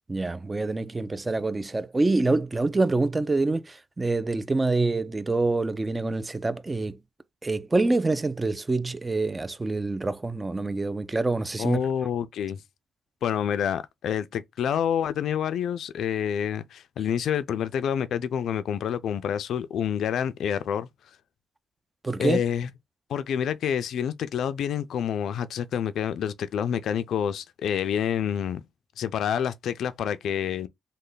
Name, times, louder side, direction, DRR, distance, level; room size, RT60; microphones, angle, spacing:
voice 1, 0.1-7.0 7.4-11.8 22.0-22.4, right 3 dB, 20° right, 0.3 m, -26 dB
voice 2, 11.6-12.6 13.2-20.9 22.2-22.7 23.1-28.6 29.0-30.7, left 8 dB, 70° left, 0.3 m, -28 dB
3.2 x 2.1 x 3.8 m
cardioid pair, 90°, 0 cm